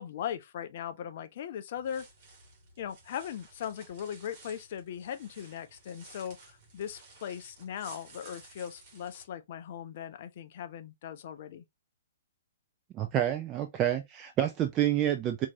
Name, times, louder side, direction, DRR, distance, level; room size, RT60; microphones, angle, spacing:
voice 1, 0.0-2.1 2.8-11.6, left 9 dB, 50° left, 0.6 m, -39 dB
sound 1, 1.8-9.2, right 3 dB, 40° right, 2.1 m, -55 dB
voice 2, 12.9-15.5, right 11 dB, 25° right, 0.5 m, -28 dB
4.4 x 2.7 x 2.8 m
figure-of-eight pair, 120°, 0 cm